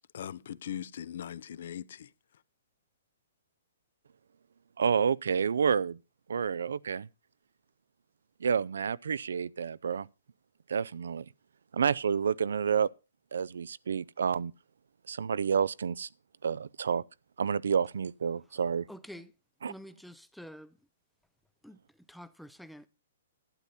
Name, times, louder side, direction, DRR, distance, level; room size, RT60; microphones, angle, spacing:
voice 1, 0.0-2.1, left 10 dB, 55° left, 0.6 m, -40 dB
voice 2, 4.8-6.0 6.3-7.1 8.4-10.1 10.7-11.3 11.7-12.9 13.3-14.5 15.1-16.1 16.4-17.0 17.4-18.9 19.6-19.7, right 6 dB, 85° right, 0.5 m, -29 dB
voice 3, 18.9-19.3 19.6-20.8 21.6-21.8 22.1-22.9, equal, ahead, 0.5 m, -48 dB
12.0 x 9.9 x 4.2 m
hypercardioid pair, 165°, 0 cm